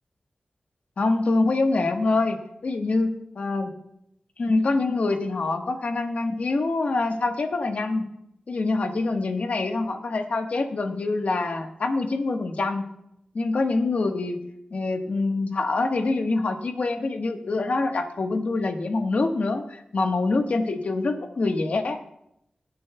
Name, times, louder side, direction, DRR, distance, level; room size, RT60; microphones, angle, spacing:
voice 1, 1.0-3.7 4.4-8.1 8.5-12.9 13.3-14.4 14.7-22.0, left 3 dB, 75° left, 5 dB, 1.3 m, -25 dB
22.0 x 9.5 x 2.3 m, 0.78 s
wide cardioid pair, 85°, 2 cm